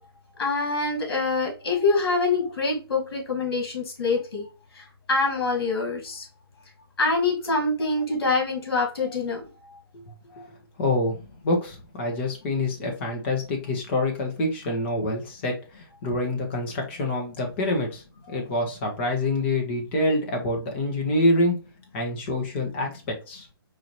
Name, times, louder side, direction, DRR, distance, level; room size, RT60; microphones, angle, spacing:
voice 1, 0.4-4.5 4.7-6.3 7.0-9.5 10.4-10.5, left 3 dB, 70° left, 1 dB, 2.1 m, -25 dB
voice 2, 10.8-11.2 11.4-21.6 21.9-23.5, left 1 dB, 30° left, 2 dB, 1.2 m, -26 dB
4.7 x 2.8 x 3.1 m, 0.31 s
hypercardioid pair, 165°, 13 cm